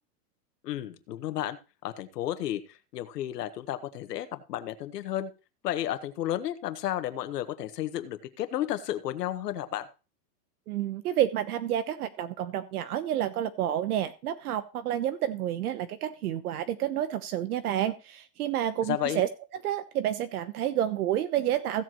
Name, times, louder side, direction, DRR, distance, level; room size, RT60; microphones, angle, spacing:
voice 1, 0.6-1.6 1.8-2.6 2.9-5.3 5.6-9.8 18.9-19.2, left 12 dB, 85° left, 10 dB, 1.6 m, -32 dB
voice 2, 10.7-19.3 19.6-21.8, right 11 dB, 70° right, 11 dB, 1.0 m, -29 dB
16.0 x 7.7 x 3.0 m, 0.32 s
supercardioid pair, 180°, 47 cm